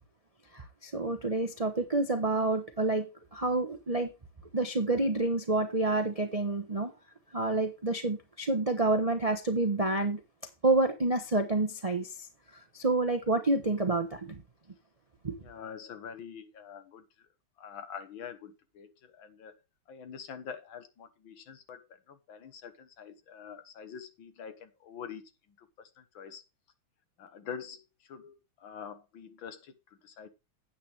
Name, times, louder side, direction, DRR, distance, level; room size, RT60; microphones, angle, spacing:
voice 1, 0.5-4.1 4.5-6.9 7.3-10.2 10.6-12.1 12.7-14.4 15.2-15.3, right 2 dB, 60° right, 0.3 m, -28 dB
voice 2, 15.4-17.1 17.6-19.5 19.9-25.3 25.6-26.4 27.2-30.3, left 7 dB, 65° left, 1.9 m, -45 dB
9.8 x 8.5 x 3.3 m
omnidirectional pair, 2.4 m